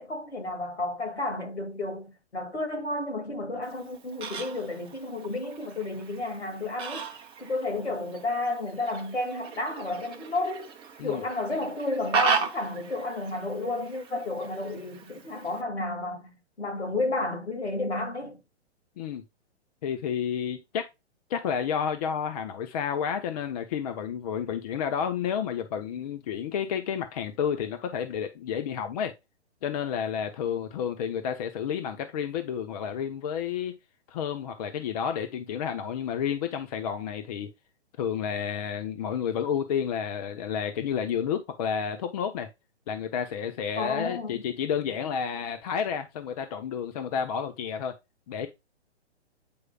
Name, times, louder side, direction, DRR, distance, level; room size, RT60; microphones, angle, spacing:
voice 1, 0.0-7.1 7.4-10.7 11.0-16.3 16.6-18.4 43.8-44.4, left 2 dB, 70° left, 2.4 m, -31 dB
Fowl, 3.6-15.6, right 5 dB, 15° right, 0.9 m, -36 dB
voice 2, 19.8-20.8 21.3-29.1 29.6-33.7 34.1-37.5 38.0-42.5 42.9-47.9 48.3-48.5, left 8 dB, 35° left, 0.9 m, -30 dB
8.6 x 4.8 x 2.3 m
figure-of-eight pair, 120°, 34 cm